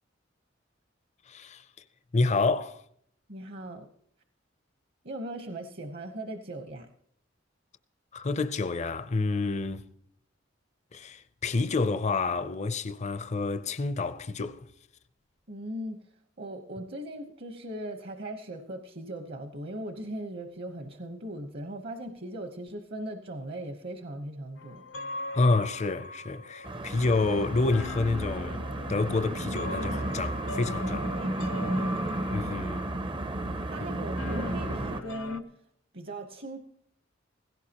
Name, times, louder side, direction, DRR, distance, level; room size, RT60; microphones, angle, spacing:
voice 1, 1.3-1.6 2.1-2.8 8.1-9.8 10.9-14.7 25.3-28.6 28.9-31.1 32.3-32.9, left 3 dB, 35° left, 0.5 m, -28 dB
voice 2, 3.3-3.9 5.0-6.9 15.5-16.0 16.4-24.8 31.2-32.1 33.7-35.6 35.9-36.6, right 1 dB, 55° right, 1.0 m, -39 dB
sound 1, 24.6-35.4, left 2 dB, 80° left, 0.8 m, -41 dB
sound 2, 26.6-35.0, right 1 dB, 25° right, 0.6 m, -33 dB
16.5 x 16.5 x 2.9 m
head